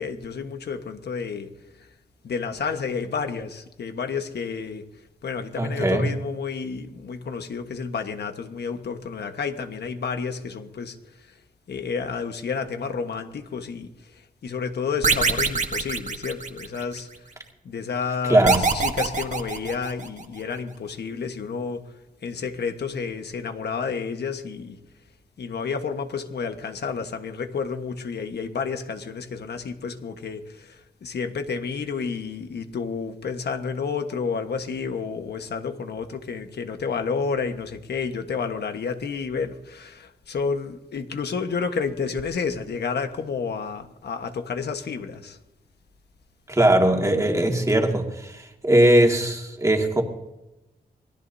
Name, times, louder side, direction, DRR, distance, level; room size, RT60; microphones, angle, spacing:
voice 1, 0.0-1.9 2.2-4.9 5.2-11.4 11.7-17.2 17.6-24.8 25.4-45.4, left 5 dB, 90° left, 1.4 m, -30 dB
voice 2, 5.6-6.0 18.3-18.7 46.5-50.0, right 1 dB, 20° right, 2.1 m, -20 dB
sound 1, 15.0-17.0 18.4-20.2, right 4 dB, 45° right, 1.4 m, -24 dB
25.5 x 19.0 x 2.8 m
wide cardioid pair, 130°, 17 cm